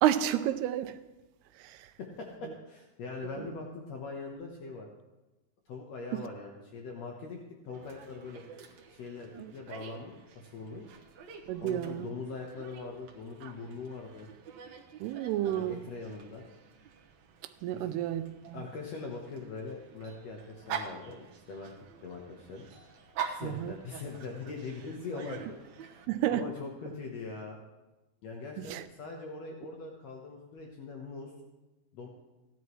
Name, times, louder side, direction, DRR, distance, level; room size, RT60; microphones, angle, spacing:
voice 1, 0.0-1.0 1.6-1.9 3.4-3.5 9.3-9.5 11.5-12.1 15.0-15.8 17.6-18.6 23.4-23.8 26.1-26.5 28.6-28.9, right 12 dB, 85° right, 2.6 m, -31 dB
voice 2, 2.0-4.9 5.7-8.4 8.9-10.8 11.6-14.3 15.4-16.4 17.7-18.0 18.5-21.7 22.0-22.7 23.2-25.6 26.1-27.6 28.2-31.3 31.9-32.1, left 4 dB, 75° left, 1.5 m, -42 dB
Dog, 7.7-26.1, right 7 dB, 65° right, 1.9 m, -46 dB
17.0 x 11.0 x 3.1 m
omnidirectional pair, 4.6 m